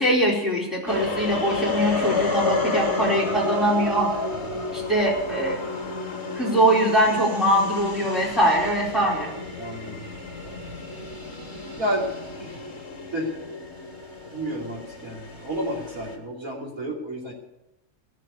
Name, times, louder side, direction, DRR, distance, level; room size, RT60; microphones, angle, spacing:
voice 1, 0.0-4.1 4.7-5.6 6.4-9.3, right 1 dB, ahead, -5 dB, 4.4 m, -22 dB
sound 1, 0.9-16.2, left 3 dB, 45° left, 3.0 m, -31 dB
voice 2, 4.3-4.6 9.6-10.1 11.8-12.1 12.4-12.6 13.1-13.4 14.3-17.3, equal, 60° right, -3 dB, 3.4 m, -31 dB
17.5 x 7.6 x 8.3 m, 0.92 s
omnidirectional pair, 1.7 m